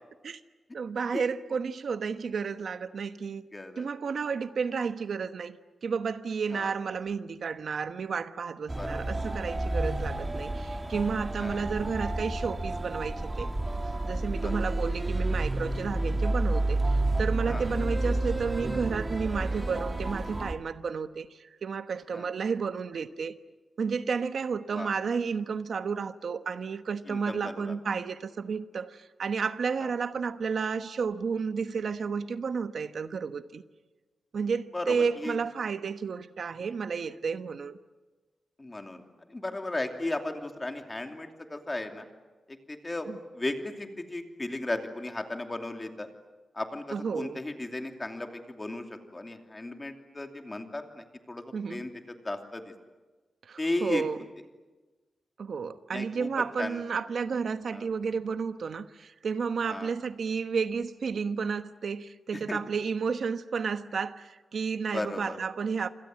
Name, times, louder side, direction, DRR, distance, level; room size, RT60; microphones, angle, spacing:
voice 1, 0.7-3.4 3.8-5.6 5.8-13.5 14.0-23.4 23.8-33.6 34.3-37.8 43.1-43.2 46.9-47.4 51.5-51.8 53.4-54.2 55.4-65.9, right 5 dB, 65° right, 1.1 m, -32 dB
voice 2, 3.5-3.9 6.5-6.7 8.7-9.1 11.4-11.6 14.4-14.6 17.5-17.7 22.1-22.3 24.7-24.9 27.1-27.8 29.8-29.9 34.7-35.4 38.6-42.1 42.5-46.1 46.5-52.7 53.6-54.0 55.9-56.3 56.6-56.8 57.7-57.9 59.7-59.9 62.3-62.6 64.8-65.4, left 2 dB, 20° left, 2.7 m, -36 dB
sound 1, 8.7-20.5, right 2 dB, 15° right, 2.1 m, -30 dB
27.0 x 27.0 x 7.7 m
wide cardioid pair, 135°, 0 cm